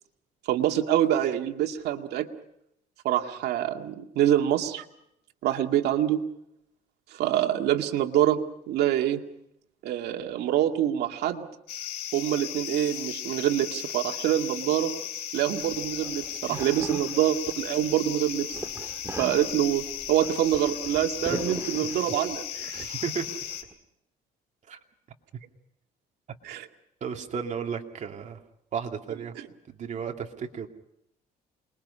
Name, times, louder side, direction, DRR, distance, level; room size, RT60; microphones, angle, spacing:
voice 1, 0.5-2.3 3.0-4.9 5.4-6.2 7.1-8.4 8.7-9.2 9.8-11.5 12.1-14.9 15.3-18.6 19.2-23.0 26.4-26.7 29.4-29.5, right 11 dB, 75° right, 4 dB, 2.2 m, -26 dB
sound 1, 11.7-23.6, left 10 dB, 85° left, 3.6 m, -36 dB
sound 2, 15.6-18.0 18.3-22.3 22.7-23.7, right 2 dB, 15° right, 2.3 m, -40 dB
voice 2, 27.0-28.4 28.7-29.3 29.7-30.7, right 7 dB, 45° right, 3 dB, 2.6 m, -33 dB
28.0 x 22.0 x 5.7 m, 0.78 s
cardioid pair, 110°, 17 cm